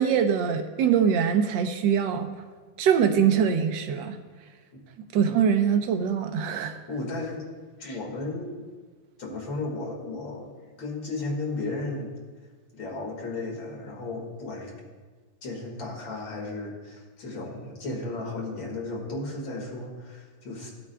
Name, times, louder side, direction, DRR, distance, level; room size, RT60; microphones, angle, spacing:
voice 1, 0.0-2.3 2.8-4.2 5.1-6.8, right 7 dB, 70° right, 6 dB, 1.4 m, -23 dB
voice 2, 6.9-7.4 7.8-8.7 9.2-10.5 10.8-12.1 12.7-14.7 15.4-20.7, left 2 dB, 75° left, -1 dB, 2.7 m, -34 dB
16.0 x 8.5 x 2.3 m, 1.4 s
omnidirectional pair, 2.2 m